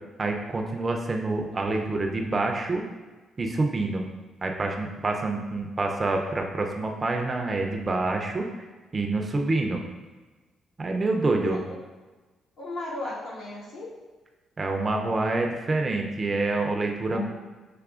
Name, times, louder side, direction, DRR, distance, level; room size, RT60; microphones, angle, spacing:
voice 1, 0.2-2.8 3.4-4.0 4.4-8.7 8.9-9.8 10.8-11.6 14.6-17.2, right 2 dB, 30° right, 2 dB, 0.5 m, -27 dB
voice 2, 12.6-13.9 17.1-17.2, left 2 dB, 70° left, -7 dB, 1.5 m, -34 dB
5.9 x 3.1 x 2.4 m, 1.3 s
cardioid pair, 90°, 0 cm